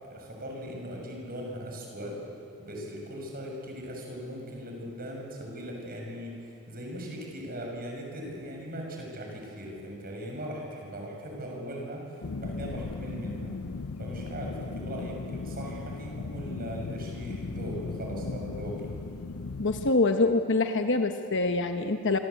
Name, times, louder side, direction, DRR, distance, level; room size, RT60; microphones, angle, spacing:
voice 1, 0.0-2.2 2.6-13.6 14.0-18.9, equal, 40° right, 0 dB, 6.8 m, -39 dB
sound 1, 12.2-19.9, left 3 dB, 80° left, 0.7 m, -37 dB
voice 2, 19.6-22.2, left 3 dB, 55° left, 6 dB, 1.1 m, -25 dB
27.0 x 24.5 x 8.5 m, 2.5 s
head